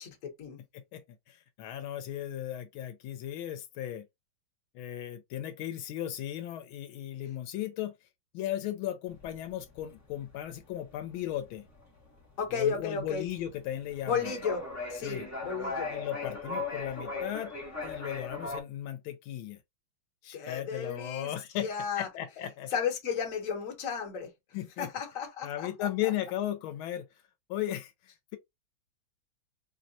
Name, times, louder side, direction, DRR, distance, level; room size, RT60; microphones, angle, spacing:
voice 1, 0.0-0.6 12.4-13.2 14.1-14.6 14.9-15.9 20.3-21.3 21.6-22.1 22.7-24.3 24.8-25.9, left 6 dB, 50° left, 1.2 m, -33 dB
voice 2, 0.7-4.1 4.7-7.9 8.3-11.7 12.5-14.3 15.0-15.3 15.9-17.5 17.8-19.6 20.2-21.7 22.0-22.7 24.5-24.9 25.4-27.1 27.5-27.9, left 12 dB, 85° left, 1.4 m, -36 dB
sound 1, 9.1-18.6, left 3 dB, 25° left, 0.3 m, -39 dB
4.6 x 2.1 x 2.6 m
omnidirectional pair, 2.3 m